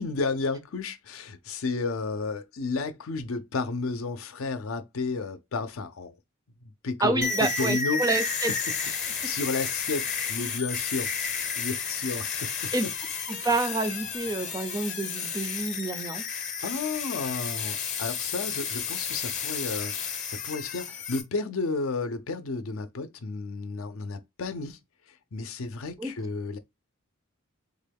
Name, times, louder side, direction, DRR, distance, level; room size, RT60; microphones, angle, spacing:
voice 1, 0.0-6.1 6.8-8.0 9.0-11.1 11.6-12.7 16.6-24.8 25.3-26.6, left 3 dB, 75° left, 0.5 m, -32 dB
voice 2, 7.0-8.5 12.7-12.8 13.3-16.2 26.0-26.1, right 2 dB, 15° right, 0.4 m, -28 dB
sound 1, 7.2-21.2, left 6 dB, 35° left, 0.7 m, -32 dB
3.5 x 2.2 x 3.4 m
head